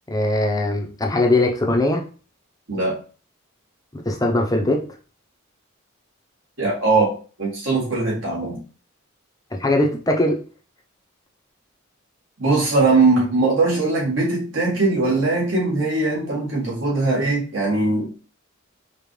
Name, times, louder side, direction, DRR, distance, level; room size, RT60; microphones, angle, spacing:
voice 1, 0.1-2.0 3.9-4.8 9.5-10.4, left 1 dB, 15° left, 2 dB, 0.7 m, -20 dB
voice 2, 6.6-8.6 12.4-18.1, right 3 dB, 65° right, -4 dB, 1.8 m, -20 dB
5.2 x 2.4 x 3.3 m, 0.37 s
head